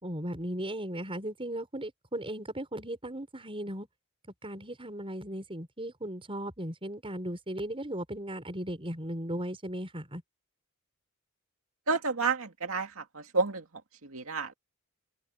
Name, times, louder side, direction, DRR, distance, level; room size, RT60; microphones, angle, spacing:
voice 1, 0.0-3.9 4.4-10.2, right 1 dB, 25° right, 6.3 m, -37 dB
voice 2, 11.9-13.6 14.0-14.5, right 4 dB, 75° right, 2.3 m, -30 dB
head